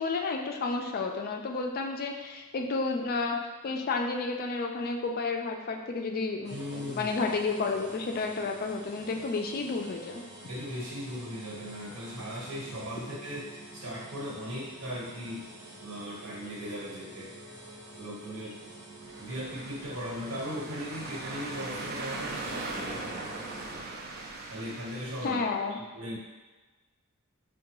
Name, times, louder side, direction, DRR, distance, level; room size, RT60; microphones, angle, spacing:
voice 1, 0.0-10.2 25.2-25.8, left 3 dB, 45° left, 3 dB, 0.4 m, -31 dB
sound 1, 6.4-23.7, right 1 dB, 20° right, 1.1 m, -48 dB
voice 2, 6.5-7.1 10.5-15.4 15.8-17.3 18.0-18.6 19.2-23.2 24.5-25.4 25.7-26.2, equal, 85° right, -4 dB, 1.2 m, -38 dB
sound 2, 19.0-25.3, right 2 dB, 45° right, 0.4 m, -39 dB
4.6 x 2.2 x 3.0 m, 1.2 s
head